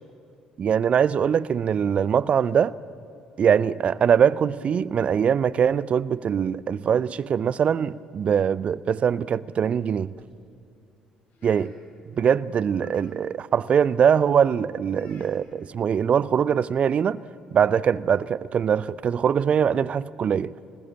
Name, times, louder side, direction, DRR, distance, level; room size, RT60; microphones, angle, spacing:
voice 1, 0.6-2.7 3.4-10.1 11.4-11.7 12.2-17.2 17.5-20.5, right 7 dB, 40° right, 0.5 m, -22 dB
sound 1, 9.8-10.4 11.3-11.8 12.3-12.4 12.7-13.0 13.7-13.9 14.9-15.3 16.3-16.4 16.7-16.9, left 2 dB, 60° left, 6.1 m, -54 dB
25.5 x 20.0 x 7.3 m
figure-of-eight pair, 50°, 3 cm